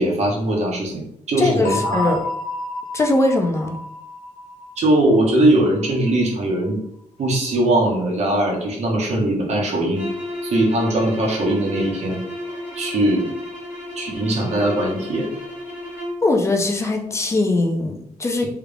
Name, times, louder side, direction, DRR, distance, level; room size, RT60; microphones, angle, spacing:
voice 1, 0.0-2.2 4.8-6.8 7.2-10.1 10.4-12.2 12.8-13.3 14.0-15.3, right 1 dB, 55° right, -2 dB, 1.0 m, -20 dB
voice 2, 1.4-2.2 2.9-3.8 16.2-18.4, left 2 dB, 20° left, 3 dB, 0.4 m, -20 dB
sound 1, 1.6-6.3, left 2 dB, 75° left, 0.7 m, -31 dB
sound 2, 9.9-16.3, left 1 dB, 15° right, 1.2 m, -32 dB
3.5 x 2.3 x 3.3 m, 0.76 s
wide cardioid pair, 170°, 14 cm